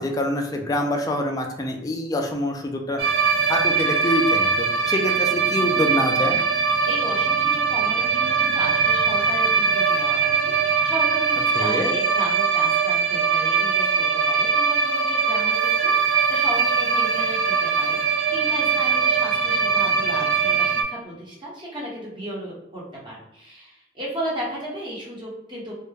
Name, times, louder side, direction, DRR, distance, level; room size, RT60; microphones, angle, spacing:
voice 1, 0.0-3.0 3.5-6.4 11.6-11.9, left 1 dB, 20° left, 2 dB, 0.3 m, -25 dB
sound 1, 3.0-20.8, right 5 dB, 55° right, 0.3 m, -21 dB
voice 2, 6.9-25.7, right 1 dB, 25° right, -6 dB, 0.9 m, -34 dB
2.3 x 2.1 x 3.2 m, 0.83 s
head